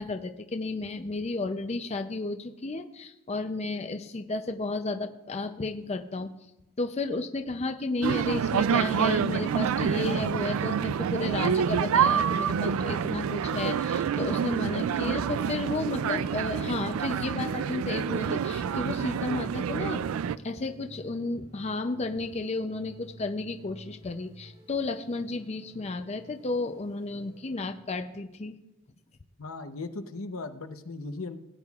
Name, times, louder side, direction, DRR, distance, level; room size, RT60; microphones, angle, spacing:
voice 1, 0.0-6.3 6.8-20.0 20.4-28.6, left 3 dB, 30° left, 7 dB, 0.5 m, -33 dB
sound 1, 8.0-20.4, right 7 dB, 80° right, 0.3 m, -27 dB
Car passing by / Engine, 10.1-16.6, right 1 dB, 60° right, 2.4 m, -54 dB
sound 2, 18.5-27.7, right 1 dB, 35° right, 1.9 m, -52 dB
voice 2, 29.4-31.4, left 3 dB, 80° left, 8 dB, 0.8 m, -37 dB
17.5 x 9.9 x 2.4 m, 0.90 s
head